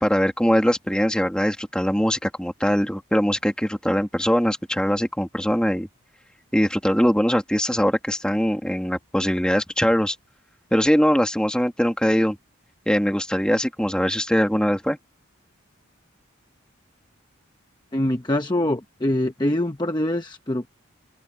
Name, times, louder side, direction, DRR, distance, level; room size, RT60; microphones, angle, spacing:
voice 1, 0.0-5.9 6.5-10.2 10.7-12.4 12.9-15.0, equal, 5° left, 2.4 m, -22 dB
voice 2, 17.9-20.7, left 1 dB, 20° left, 0.9 m, -24 dB
open air
head